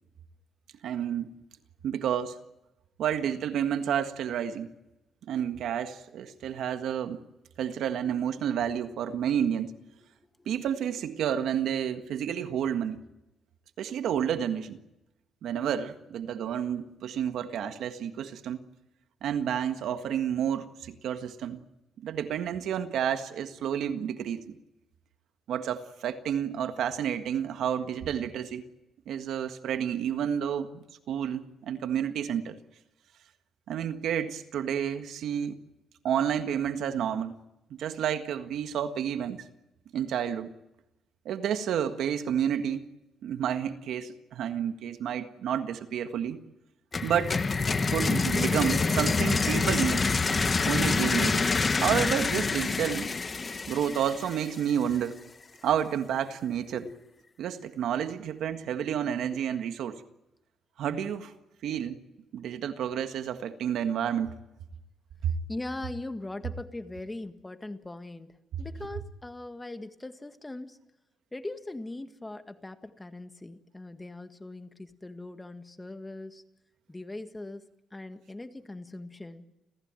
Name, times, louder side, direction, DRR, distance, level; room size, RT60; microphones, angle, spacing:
voice 1, 0.8-1.3 1.8-2.4 3.0-4.7 5.3-7.2 7.6-9.7 10.4-13.0 13.8-14.8 15.4-18.6 19.2-21.6 22.0-24.6 25.5-28.6 29.1-32.6 33.7-35.6 36.0-37.3 37.7-39.5 39.9-40.5 41.2-42.9 43.2-46.4 47.0-47.4 47.9-50.1 50.6-51.4 51.8-53.1 53.7-55.2 55.6-56.9 57.4-60.0 60.8-61.3 61.6-62.0 62.3-64.3 65.2-65.3, right 9 dB, 75° right, 1.6 m, -30 dB
sound 1, 46.9-54.7, left 4 dB, 30° left, 1.3 m, -27 dB
voice 2, 65.5-70.8 71.3-76.4 76.9-79.5, left 2 dB, 15° left, 1.8 m, -41 dB
29.5 x 15.0 x 9.0 m
cardioid pair, 90°, 0 cm